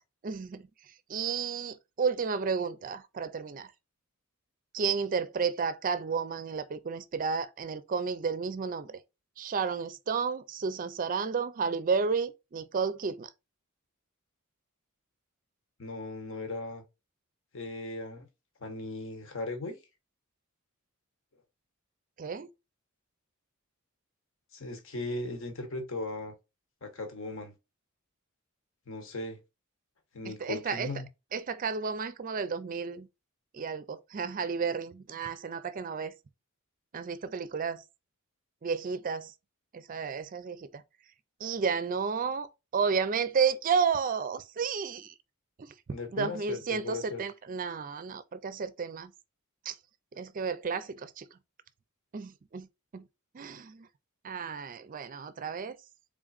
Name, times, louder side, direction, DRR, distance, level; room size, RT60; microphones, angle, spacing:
voice 1, 0.2-3.7 4.7-9.0 9.4-13.3 22.2-22.5 30.2-30.9 31.3-33.1 33.5-36.1 36.9-37.8 38.6-39.3 39.7-40.8 41.4-45.1 45.6-49.1 49.6-49.8 50.1-51.4 52.1-52.7 52.9-53.1 53.3-53.9 54.2-55.8, right 5 dB, 40° right, 0.4 m, -32 dB
voice 2, 15.8-16.8 17.5-18.3 18.6-19.8 24.5-26.3 26.8-27.5 28.9-29.4 30.1-31.1 45.9-47.2, left 2 dB, 65° left, 1.1 m, -37 dB
3.7 x 3.7 x 2.4 m
head